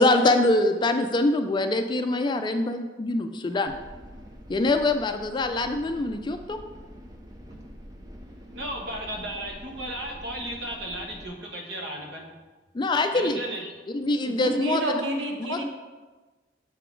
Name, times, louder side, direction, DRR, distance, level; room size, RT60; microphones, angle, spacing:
voice 1, 0.0-3.7 4.5-6.6 12.7-13.4 13.9-14.8 15.5-15.6, left 2 dB, 25° left, 7 dB, 0.4 m, -24 dB
sound 1, 3.7-11.3, equal, 20° right, 0.7 m, -45 dB
voice 2, 8.5-12.3 13.1-13.7, right 1 dB, 70° right, 0 dB, 1.2 m, -35 dB
voice 3, 14.2-15.6, right 1 dB, 85° right, 2 dB, 0.9 m, -29 dB
6.7 x 4.1 x 4.5 m, 1.3 s
head